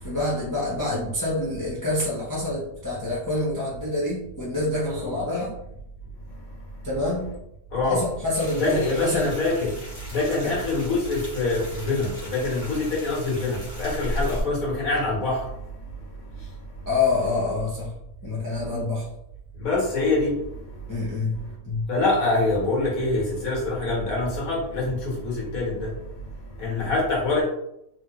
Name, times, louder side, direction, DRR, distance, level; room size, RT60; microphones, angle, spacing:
voice 1, 0.0-5.5 6.8-7.3 7.8-9.3 10.4-10.5 16.9-17.9 18.2-19.1 20.9-21.4 21.6-21.9, left 2 dB, 25° left, -7 dB, 0.4 m, -27 dB
voice 2, 7.7-8.0 8.6-9.7 10.1-15.4 19.6-20.3 21.9-25.9 26.6-27.4, left 2 dB, 65° left, -5 dB, 1.6 m, -25 dB
sound 1, 8.3-14.4, equal, 10° right, 1.0 m, -36 dB
3.2 x 2.9 x 2.4 m, 0.80 s
omnidirectional pair, 1.6 m